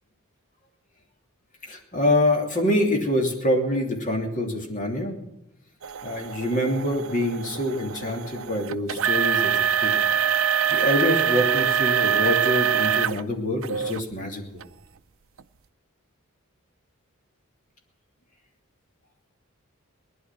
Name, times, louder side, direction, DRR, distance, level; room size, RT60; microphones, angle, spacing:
voice 1, 1.6-5.2 6.0-10.0 10.7-14.4, left 1 dB, 40° left, 2 dB, 3.0 m, -25 dB
sound 1, 5.8-13.2 13.6-14.0 14.6-14.7 15.4-15.5, right 8 dB, 65° right, 0.6 m, -24 dB
19.0 x 11.5 x 6.0 m, 0.85 s
head